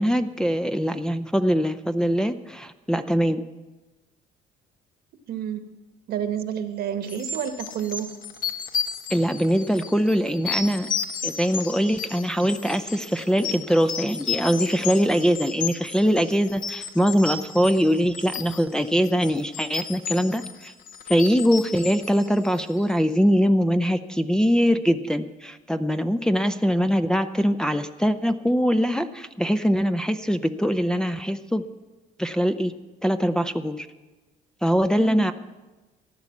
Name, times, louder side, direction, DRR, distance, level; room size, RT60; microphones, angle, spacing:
voice 1, 0.0-3.4 9.1-10.9 11.2-20.7 21.1-31.6 32.2-32.7 33.0-33.9 34.6-35.3, equal, 5° left, 7 dB, 0.6 m, -22 dB
voice 2, 5.3-5.6 6.1-8.1 35.0-35.3, right 8 dB, 65° right, 8 dB, 1.4 m, -29 dB
sound 1, 7.1-22.9, left 6 dB, 55° left, 1.2 m, -33 dB
15.0 x 10.5 x 7.2 m, 1.2 s
cardioid pair, 110°, 17 cm